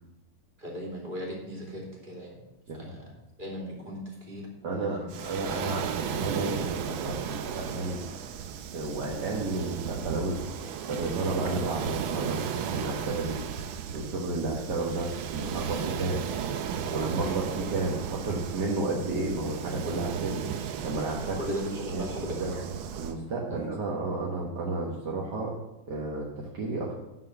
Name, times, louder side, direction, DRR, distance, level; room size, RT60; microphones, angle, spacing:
voice 1, 0.6-2.4 2.7-5.1 17.2-17.4 21.4-22.6 23.5-23.6, equal, 25° right, -2 dB, 2.8 m, -37 dB
voice 2, 4.6-8.0 8.7-10.4 10.9-12.4 12.7-13.4 13.9-16.2 16.9-17.4 17.7-20.5 20.8-21.4 21.9-22.1 22.4-22.5 23.0-25.6 25.9-26.9, right 2 dB, 60° right, -3 dB, 1.9 m, -32 dB
Waves surf, 5.1-23.2, right 8 dB, 90° right, 1.5 m, -35 dB
11.5 x 4.7 x 6.7 m, 0.98 s
omnidirectional pair, 2.1 m